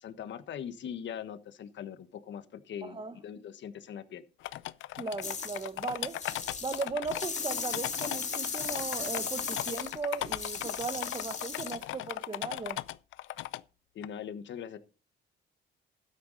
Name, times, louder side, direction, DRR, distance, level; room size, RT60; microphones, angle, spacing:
voice 1, 0.0-4.2 13.9-14.8, left 8 dB, 65° left, 1.3 m, -41 dB
voice 2, 2.8-3.2 4.9-6.2 6.6-12.8, right 4 dB, 25° right, 0.9 m, -37 dB
sound 1, 4.4-13.6 14.0-14.1, left 15 dB, 80° left, 0.5 m, -37 dB
sound 2, 5.2-5.7 6.0-11.8, left 5 dB, 35° left, 1.9 m, -37 dB
12.5 x 9.5 x 4.0 m
cardioid pair, 90°, 20 cm